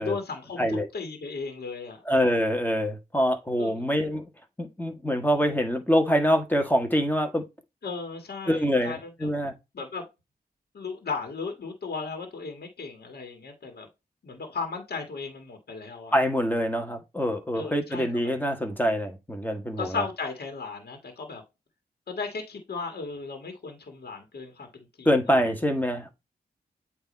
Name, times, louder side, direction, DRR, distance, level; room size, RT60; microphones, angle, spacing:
voice 1, 0.0-2.0 3.6-3.8 7.8-9.1 9.7-10.1 10.7-13.9 14.2-16.1 17.5-18.3 19.8-21.4 22.1-25.4, left 4 dB, 75° left, 1.8 m, -36 dB
voice 2, 2.1-4.3 4.6-7.4 8.5-9.5 16.1-20.0 25.1-26.1, equal, 10° left, 1.9 m, -25 dB
8.6 x 3.1 x 4.2 m
cardioid pair, 60°, 17 cm